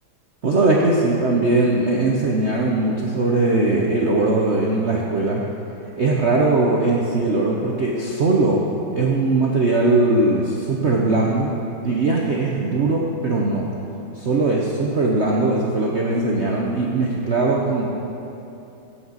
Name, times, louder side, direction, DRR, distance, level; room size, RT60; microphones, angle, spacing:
voice 1, 0.4-5.4 6.0-8.6 8.9-11.6 11.8-13.7 14.2-17.9, right 2 dB, 65° right, -2 dB, 0.6 m, -20 dB
15.5 x 7.8 x 4.0 m, 2.9 s
omnidirectional pair, 2.3 m